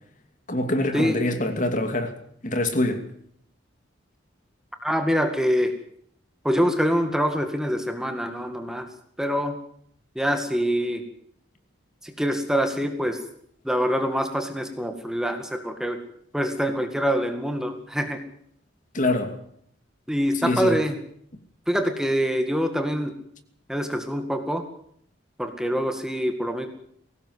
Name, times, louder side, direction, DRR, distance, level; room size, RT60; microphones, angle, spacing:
voice 1, 0.5-2.1 2.4-3.1 18.9-19.4 20.4-20.8, left 1 dB, 40° left, 2.8 m, -24 dB
voice 2, 4.8-5.7 6.4-8.9 9.2-9.6 10.2-11.0 12.0-13.2 13.7-16.0 16.3-18.2 20.1-20.9 21.7-23.1 23.7-24.6 25.4-26.7, equal, 5° right, 2.1 m, -25 dB
22.0 x 18.5 x 8.2 m
head